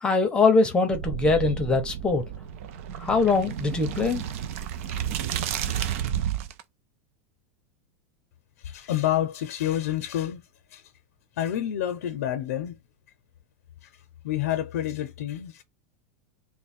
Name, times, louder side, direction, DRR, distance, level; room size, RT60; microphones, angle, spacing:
voice 1, 0.0-2.2 3.0-4.2, left 3 dB, 10° left, 0.8 m, -22 dB
sound 1, 0.9-6.6, right 9 dB, 60° right, 0.5 m, -31 dB
voice 2, 8.6-10.4 10.7-10.8 11.4-12.8 14.2-15.6, left 12 dB, 85° left, 0.6 m, -28 dB
3.1 x 2.2 x 4.2 m
supercardioid pair, 155°, 8 cm